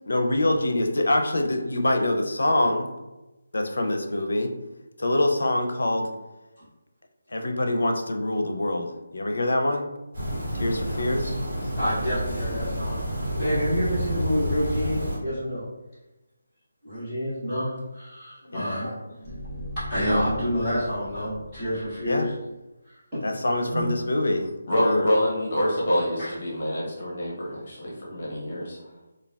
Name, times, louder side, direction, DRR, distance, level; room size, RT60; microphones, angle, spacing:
voice 1, 0.1-2.9 3.5-4.5 5.0-6.1 7.3-9.9 10.5-11.3 18.5-18.7 22.0-22.3 23.2-24.5 24.7-25.1, left 1 dB, 85° left, 4 dB, 0.4 m, -25 dB
sound 1, 10.1-15.2, equal, 45° right, 1.2 m, -29 dB
voice 2, 10.8-11.2 11.6-15.6 16.8-22.3 22.8-23.9 26.2-26.3, equal, 5° right, -19 dB, 1.3 m, -29 dB
sound 2, 19.2-22.4, equal, 65° right, 0.6 m, -39 dB
voice 3, 24.7-28.8, equal, 40° left, -5 dB, 0.7 m, -26 dB
3.3 x 2.2 x 2.2 m, 1.0 s
hypercardioid pair, 175°, 0 cm